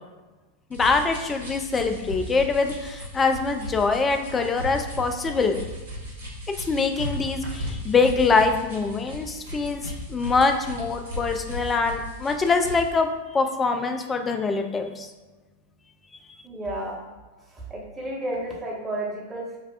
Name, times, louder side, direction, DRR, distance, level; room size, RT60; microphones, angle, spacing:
sound 1, 0.7-12.9, left 1 dB, 70° right, 1.1 m, -36 dB
voice 1, 0.8-5.6 6.7-9.8 10.1-13.1 13.3-15.1, left 4 dB, 20° left, 6 dB, 0.3 m, -24 dB
voice 2, 16.4-17.0 17.5-19.6, right 1 dB, 15° right, -4 dB, 1.0 m, -32 dB
5.5 x 2.3 x 2.3 m, 1.3 s
figure-of-eight pair, 90°, 0 cm